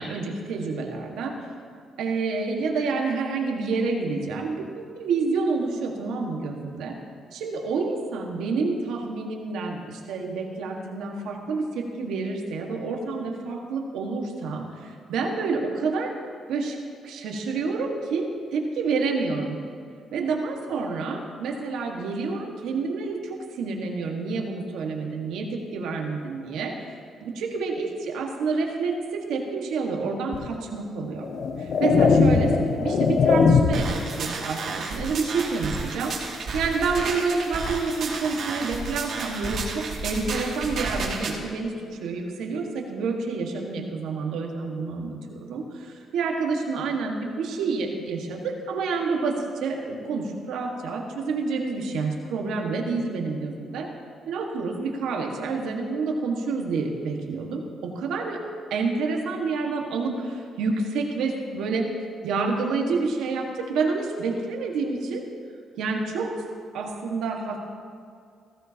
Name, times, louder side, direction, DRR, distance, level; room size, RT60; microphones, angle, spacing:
voice 1, 0.0-1.3 2.0-7.0 7.3-16.1 16.5-16.8 17.0-19.6 20.1-26.7 27.2-31.3 31.6-49.3 49.6-53.9 54.3-58.4 58.7-61.9 62.2-65.2 65.8-66.4 66.7-67.6, right 4 dB, 85° right, 1 dB, 1.6 m, -28 dB
sound 1, 30.3-30.5 31.2-34.0, left 4 dB, 55° left, 0.8 m, -20 dB
sound 2, 33.7-41.3, right 3 dB, 60° right, 2.4 m, -32 dB
16.0 x 14.5 x 2.9 m, 2.3 s
cardioid pair, 90°, 0 cm